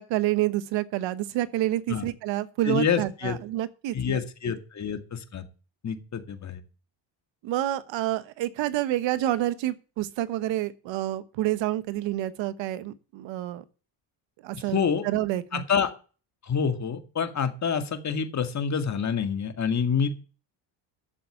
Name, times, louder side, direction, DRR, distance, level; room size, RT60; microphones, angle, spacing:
voice 1, 0.0-4.2 7.4-13.6 14.4-15.6, right 14 dB, 75° right, 1.3 m, -28 dB
voice 2, 2.7-3.4 3.9-5.4 5.8-6.6 14.5-15.0 15.5-15.9 16.4-20.1, left 6 dB, 40° left, 2.0 m, -27 dB
11.5 x 7.1 x 7.8 m
cardioid pair, 110°, 45 cm